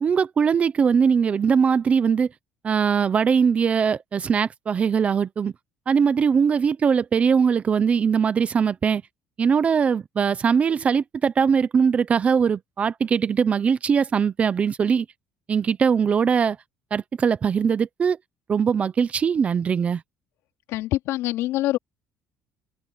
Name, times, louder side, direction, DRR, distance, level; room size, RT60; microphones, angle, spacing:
voice 1, 0.0-2.3 2.6-5.5 5.9-9.0 9.4-15.1 15.5-16.6 16.9-18.2 18.5-20.0, right 6 dB, 30° right, 0.7 m, -21 dB
voice 2, 20.7-21.8, left 16 dB, 75° left, 3.9 m, -25 dB
cardioid pair, 150°, 5 cm